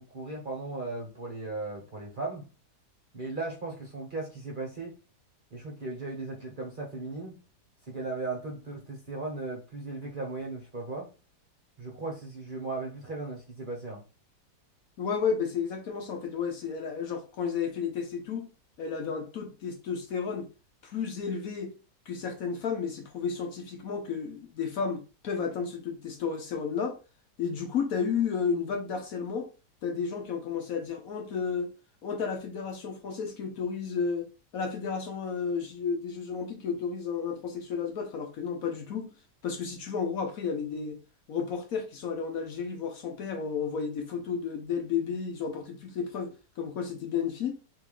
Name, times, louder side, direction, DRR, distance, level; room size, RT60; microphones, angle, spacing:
voice 1, 0.0-2.5 3.1-5.0 5.5-7.4 7.9-11.1 11.8-14.0, right 3 dB, 35° right, 0.9 m, -37 dB
voice 2, 15.0-18.5 18.8-20.5 20.8-21.7 22.1-27.0 27.4-29.5 29.8-31.7 32.0-34.3 34.5-39.1 39.4-41.0 41.3-47.6, left 6 dB, 65° left, 1.1 m, -32 dB
3.5 x 3.0 x 4.8 m
omnidirectional pair, 1.8 m